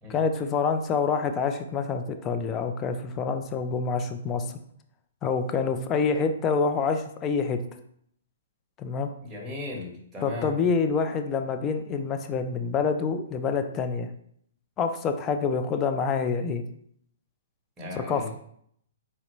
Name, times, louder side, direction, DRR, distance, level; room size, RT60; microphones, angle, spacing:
voice 1, 0.1-4.6 5.2-7.6 8.8-9.1 10.2-14.1 14.8-16.6 17.9-18.3, left 5 dB, 25° left, 7 dB, 0.5 m, -27 dB
voice 2, 9.2-10.5 17.8-18.3, left 2 dB, 15° right, -3 dB, 1.3 m, -37 dB
4.2 x 3.8 x 3.1 m, 0.67 s
hypercardioid pair, 135°, 0 cm